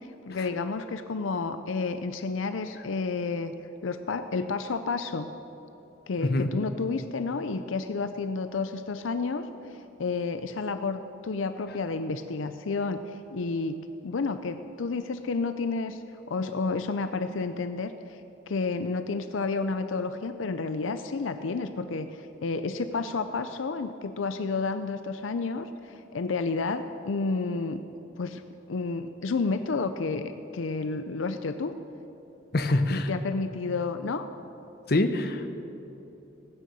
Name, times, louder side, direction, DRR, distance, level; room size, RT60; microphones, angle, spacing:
voice 1, 0.3-3.5 3.8-5.3 6.1-9.5 9.7-13.8 14.0-16.0 16.3-18.2 18.5-27.8 28.2-28.4 28.7-31.7 32.9-34.3, left 4 dB, 85° left, 9 dB, 0.5 m, -30 dB
voice 2, 6.2-6.5 32.5-33.1 34.9-35.5, left 2 dB, 50° left, 8 dB, 0.8 m, -25 dB
16.0 x 9.3 x 6.9 m, 3.0 s
head